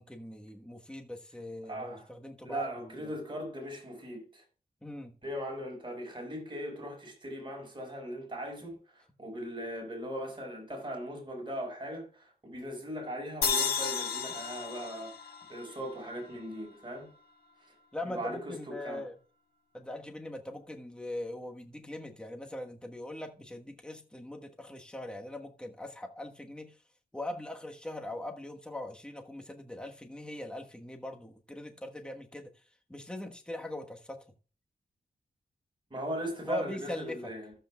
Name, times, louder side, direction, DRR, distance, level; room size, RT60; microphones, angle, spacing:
voice 1, 0.0-3.1 4.8-5.1 17.9-19.2 19.7-26.8 27.1-32.5 32.9-34.3 36.5-37.3, left 1 dB, 5° left, 1.2 m, -41 dB
voice 2, 1.7-2.1 2.4-4.4 5.2-15.1 15.5-17.1 18.0-19.0 35.9-37.5, equal, 30° right, 5.0 m, -39 dB
sound 1, 13.4-16.7, left 6 dB, 85° left, 1.4 m, -33 dB
14.5 x 7.7 x 2.3 m
cardioid pair, 80°, 16 cm